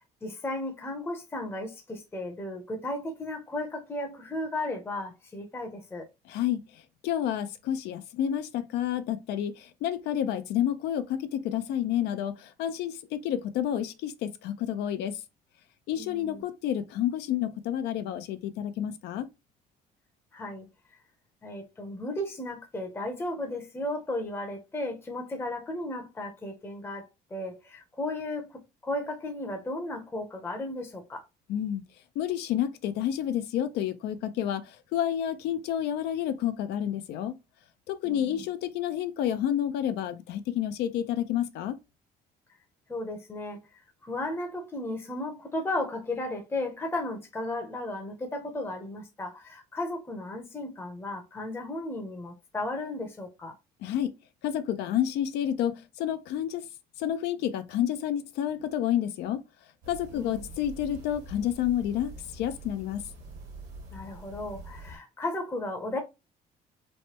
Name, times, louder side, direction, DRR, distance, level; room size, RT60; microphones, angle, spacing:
voice 1, 0.2-6.1 16.0-16.4 20.3-20.7 21.4-31.2 38.0-38.5 42.9-53.5 60.1-60.4 63.9-66.0, left 1 dB, 15° left, 0.6 m, -35 dB
voice 2, 6.3-6.6 7.0-15.2 15.9-19.3 31.5-31.8 32.2-37.3 37.9-41.8 53.8-54.1 54.4-56.6 57.0-59.4 59.9-63.0, left 10 dB, 80° left, 0.5 m, -29 dB
sound 1, 59.8-65.0, right 1 dB, 75° right, 1.4 m, -45 dB
3.1 x 2.2 x 2.9 m
cardioid pair, 110°, 17 cm